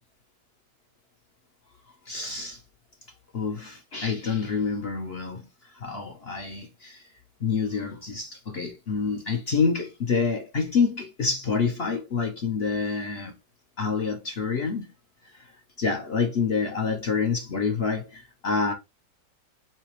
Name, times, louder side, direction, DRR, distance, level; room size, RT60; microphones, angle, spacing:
voice 1, 2.1-2.6 3.3-7.1 7.4-13.3 13.8-14.9 15.2-15.5 15.8-18.7, left 5 dB, 45° left, 0.9 m, -27 dB
5.8 x 2.9 x 3.1 m
omnidirectional pair, 1.9 m